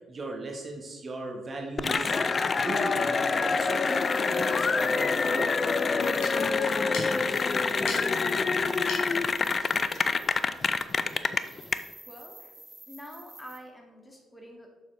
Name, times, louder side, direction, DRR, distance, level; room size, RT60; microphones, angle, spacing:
voice 1, 0.1-2.2 2.6-7.5, right 2 dB, 40° right, 1 dB, 1.2 m, -39 dB
Cheering / Applause, 1.8-11.8, left 4 dB, 40° left, 0.4 m, -26 dB
sound 1, 3.9-13.6, right 1 dB, 15° right, 1.2 m, -52 dB
sound 2, 6.0-11.2, left 3 dB, 70° left, 1.8 m, -43 dB
voice 2, 12.1-12.5 12.9-14.7, equal, 15° left, 1 dB, 2.0 m, -48 dB
6.9 x 6.7 x 3.2 m, 1.4 s
hypercardioid pair, 45°, 0 cm